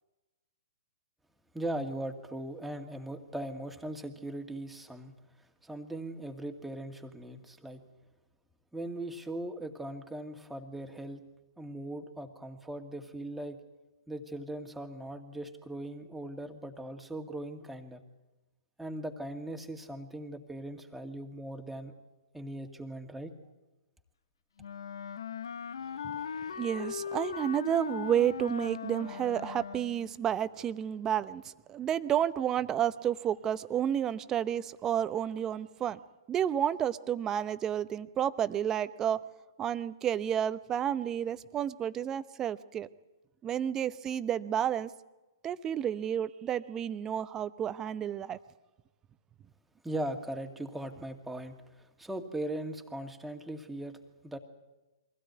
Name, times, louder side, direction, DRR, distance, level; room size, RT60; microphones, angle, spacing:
voice 1, 1.5-5.1 5.6-7.8 8.7-11.2 11.6-13.6 14.1-18.0 18.8-21.9 22.3-23.3 49.8-54.0 54.2-54.4, right 1 dB, 5° right, 3 dB, 2.2 m, -39 dB
Wind instrument woodwind instrument, 24.6-30.1, left 7 dB, 75° left, 0.8 m, -39 dB
voice 2, 26.5-36.0 36.3-39.2 39.6-42.9 43.4-44.9 45.4-48.4, right 9 dB, 20° right, 14 dB, 0.8 m, -31 dB
23.5 x 16.5 x 9.5 m, 1.1 s
hypercardioid pair, 125°, 2 cm